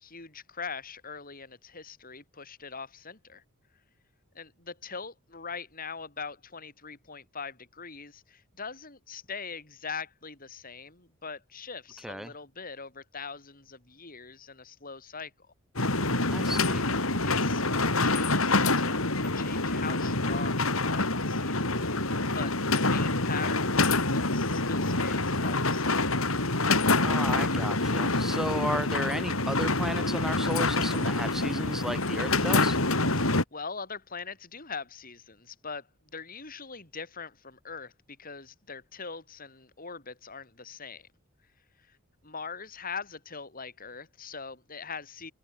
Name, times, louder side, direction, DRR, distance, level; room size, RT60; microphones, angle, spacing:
voice 1, 0.0-3.4 4.4-15.3 17.2-26.1 33.2-35.9 36.1-41.1 41.8-42.0 42.2-45.3, left 5 dB, 40° left, 6.9 m, -42 dB
sound 1, 15.8-33.4, left 2 dB, 75° left, 5.0 m, -26 dB
voice 2, 16.3-16.9 27.0-32.8, equal, ahead, 7.1 m, -34 dB
head